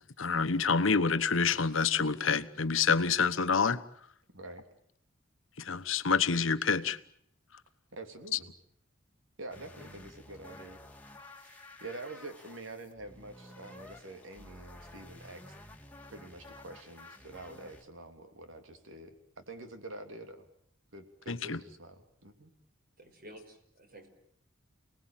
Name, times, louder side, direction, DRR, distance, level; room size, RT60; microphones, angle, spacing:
voice 1, 0.2-3.8 5.6-7.0 21.3-21.6, left 5 dB, 80° left, 1.2 m, -27 dB
voice 2, 4.3-4.7 7.9-8.5 9.4-10.8 11.3-15.5 16.1-20.4 20.9-22.5, right 2 dB, 80° right, 3.1 m, -47 dB
sound 1, 9.5-17.8, left 2 dB, 10° left, 2.5 m, -52 dB
voice 3, 23.0-24.1, equal, 50° right, 5.8 m, -51 dB
29.0 x 19.5 x 9.1 m
head